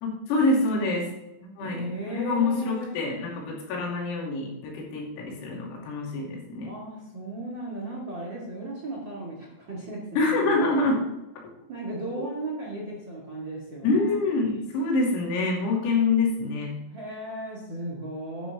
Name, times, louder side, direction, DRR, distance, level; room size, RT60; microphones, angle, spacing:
voice 1, 0.0-1.1 1.6-6.7 10.2-11.0 13.8-16.8, left 3 dB, 85° left, -3 dB, 5.3 m, -26 dB
voice 2, 1.6-3.0 6.6-10.5 11.7-14.2 16.8-18.5, right 2 dB, 60° right, -3 dB, 1.1 m, -36 dB
10.5 x 10.5 x 3.5 m, 0.95 s
omnidirectional pair, 6.0 m